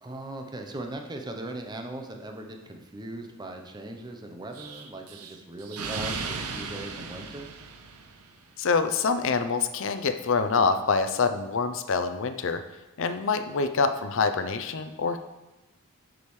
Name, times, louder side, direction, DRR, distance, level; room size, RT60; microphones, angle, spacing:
voice 1, 0.0-7.5, right 1 dB, 20° right, 3 dB, 0.7 m, -39 dB
Explosion, 4.5-8.4, right 4 dB, 85° right, 0.8 m, -36 dB
voice 2, 8.6-12.6 13.0-15.2, left 4 dB, 60° left, 10 dB, 0.5 m, -26 dB
8.5 x 6.3 x 3.2 m, 1.1 s
head